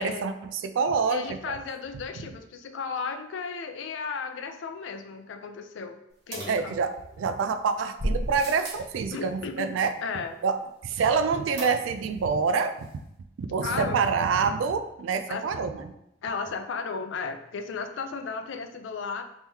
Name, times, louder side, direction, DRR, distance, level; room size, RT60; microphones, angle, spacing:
voice 1, 0.0-1.6 6.5-9.9 10.4-12.9 13.4-15.9, right 5 dB, 90° right, 9 dB, 0.3 m, -27 dB
voice 2, 1.1-6.0 6.3-6.8 9.1-9.7 10.0-10.4 13.6-14.1 15.3-15.5 16.2-19.2, left 5 dB, 75° left, 8 dB, 0.4 m, -34 dB
sound 1, 6.3-7.3 8.0-8.9 11.6-12.2 12.5-12.6 12.8-12.9, right 1 dB, 55° right, 1.0 m, -33 dB
3.7 x 3.0 x 2.7 m, 0.82 s
head